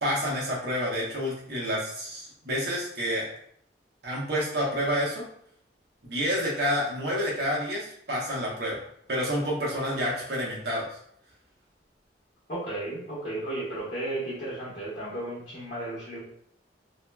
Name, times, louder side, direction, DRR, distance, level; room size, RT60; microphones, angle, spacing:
voice 1, 0.0-3.3 4.0-5.2 6.0-8.8 9.1-11.0, equal, 65° right, -4 dB, 1.0 m, -29 dB
voice 2, 12.5-16.2, right 1 dB, 50° left, -11 dB, 1.3 m, -34 dB
3.0 x 2.9 x 2.3 m, 0.67 s
head